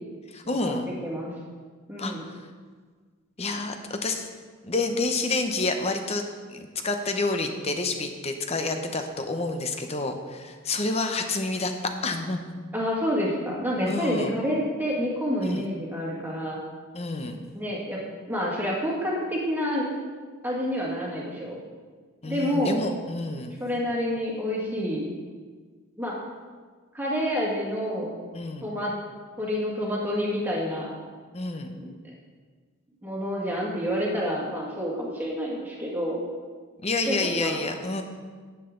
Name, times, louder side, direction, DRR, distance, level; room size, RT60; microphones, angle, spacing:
voice 1, 0.3-0.9 2.0-2.3 3.4-4.3 4.6-6.2 6.5-12.4 13.9-14.4 15.4-15.7 16.9-17.4 22.2-23.6 28.3-28.7 31.3-31.7 36.8-38.0, left 3 dB, 30° left, 6 dB, 0.8 m, -29 dB
voice 2, 1.9-2.2 12.7-16.6 17.5-18.0 18.3-19.9 20.4-21.6 22.3-22.8 23.6-25.1 26.0-26.1 26.9-28.2 28.6-28.9 29.4-30.9 31.8-31.9 33.0-36.2 37.1-37.6, equal, 10° right, -4 dB, 1.9 m, -28 dB
10.5 x 7.9 x 3.8 m, 1.5 s
head